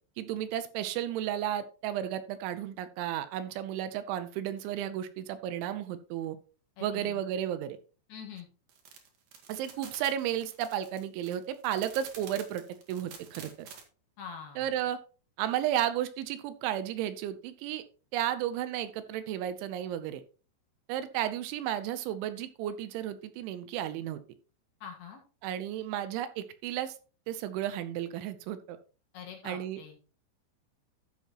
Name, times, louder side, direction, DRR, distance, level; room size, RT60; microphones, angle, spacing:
voice 1, 0.2-6.4 6.8-7.8 9.5-12.6 12.9-13.7 14.6-15.0 15.4-17.8 18.1-20.2 20.9-24.2 25.4-27.0 27.3-28.8 29.4-29.8, right 11 dB, 80° right, 11 dB, 3.0 m, -33 dB
voice 2, 6.8-7.2 8.1-8.5 9.8-9.9 14.2-14.7 24.8-25.2 29.1-30.0, left 6 dB, 65° left, 1 dB, 3.1 m, -44 dB
sound 1, 8.7-13.8, right 7 dB, 60° right, 2.7 m, -48 dB
12.5 x 7.6 x 2.9 m, 0.37 s
omnidirectional pair, 5.6 m